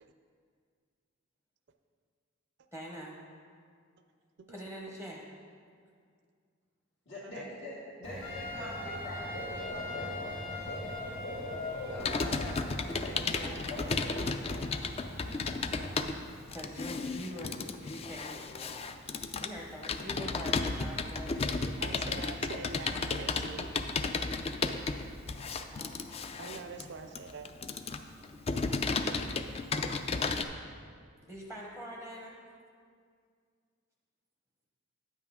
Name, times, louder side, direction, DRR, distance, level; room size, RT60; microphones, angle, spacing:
voice 1, 2.7-3.2 4.5-5.2 16.5-22.0 22.9-23.3 25.7-26.3 28.7-29.2 31.3-32.4, equal, 10° left, -2 dB, 0.8 m, -45 dB
voice 2, 7.1-11.4 11.9-14.6, left 1 dB, 70° left, -11 dB, 1.9 m, -44 dB
Dog / Bird, 8.0-16.0, left 1 dB, 85° left, 2.6 m, -42 dB
Trumpet, 8.2-12.8, left 2 dB, 45° left, 1.2 m, -42 dB
Computer keyboard, 12.0-30.4, left 4 dB, 30° left, 0.3 m, -34 dB
voice 3, 21.8-23.7 26.4-27.5, right 4 dB, 60° right, 7 dB, 0.4 m, -44 dB
9.5 x 8.1 x 3.6 m, 2.1 s
head